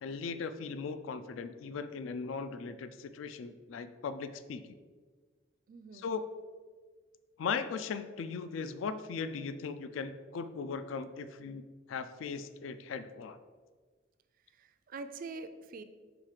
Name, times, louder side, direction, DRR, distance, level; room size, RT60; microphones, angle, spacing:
voice 1, 0.0-4.6 5.9-6.2 7.4-13.4, left 5 dB, 80° left, 11 dB, 0.3 m, -38 dB
voice 2, 5.7-6.1 14.6-15.8, right 3 dB, 45° right, 10 dB, 0.4 m, -44 dB
5.9 x 3.7 x 4.9 m, 1.5 s
head